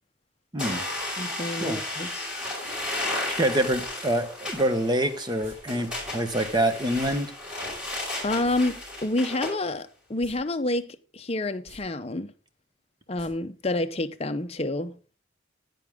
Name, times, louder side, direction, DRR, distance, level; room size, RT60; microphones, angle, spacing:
sound 1, 0.6-9.6, left 1 dB, 5° right, 5.2 m, -34 dB
voice 1, 1.2-2.3 8.2-12.3 13.1-14.9, left 2 dB, 30° left, 0.6 m, -29 dB
voice 2, 3.4-7.3, right 1 dB, 20° right, 1.0 m, -26 dB
sound 2, 3.7-3.8 5.4-5.5 6.9-7.1 7.4-7.5 8.3-8.6 10.2-10.4 10.7-10.8 11.5-11.8 13.2-13.3 13.6-13.7, equal, 80° right, 3.6 m, -48 dB
10.0 x 9.3 x 3.6 m
head